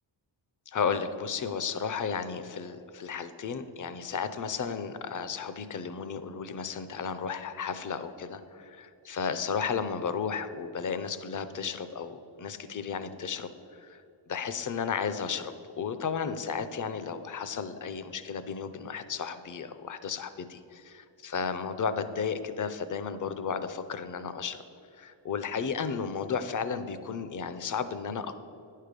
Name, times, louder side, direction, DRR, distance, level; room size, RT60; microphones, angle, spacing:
voice 1, 0.7-14.0 14.3-24.6 25.0-28.4, left 6 dB, 45° left, 11 dB, 0.5 m, -34 dB
9.9 x 6.6 x 5.1 m, 2.8 s
wide cardioid pair, 145°, 45 cm